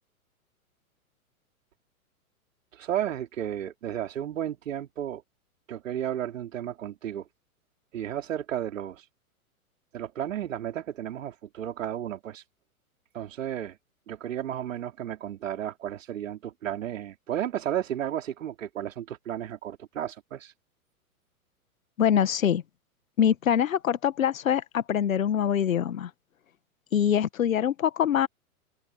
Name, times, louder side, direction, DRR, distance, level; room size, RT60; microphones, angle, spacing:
voice 1, 2.7-5.2 5.7-7.3 7.9-9.0 9.9-12.4 13.1-13.8 14.1-20.5, right 11 dB, 60° right, 4.5 m, -33 dB
voice 2, 22.0-22.6 23.2-26.1 26.9-28.3, left 9 dB, 65° left, 1.6 m, -24 dB
open air
figure-of-eight pair, 110°, 43 cm